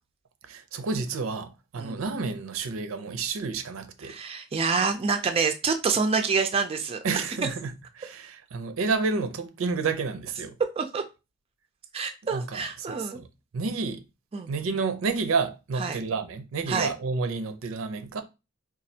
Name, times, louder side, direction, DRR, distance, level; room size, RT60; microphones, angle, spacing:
voice 1, 0.4-4.2 7.0-7.7 8.0-10.5 12.3-13.3 13.5-14.0 14.5-18.2, right 4 dB, 85° right, 0.5 m, -30 dB
voice 2, 4.0-7.0 10.8-11.0 11.9-13.2 14.3-14.5 15.8-16.0 16.7-16.9, right 5 dB, 30° right, 0.3 m, -27 dB
4.1 x 2.3 x 2.7 m
head